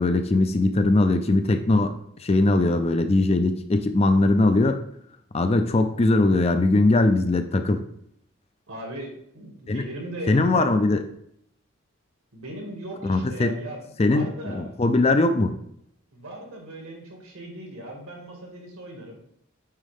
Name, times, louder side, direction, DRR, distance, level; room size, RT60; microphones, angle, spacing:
voice 1, 0.0-1.9 2.2-4.8 5.3-7.8 9.7-9.8 10.3-11.0 13.0-13.5 14.0-14.3 14.5-15.5, left 2 dB, 30° left, 8 dB, 0.4 m, -20 dB
voice 2, 2.5-2.8 8.7-10.8 12.3-14.8 16.1-19.2, right 1 dB, 80° right, 0 dB, 2.2 m, -38 dB
9.1 x 3.7 x 3.5 m, 0.71 s
head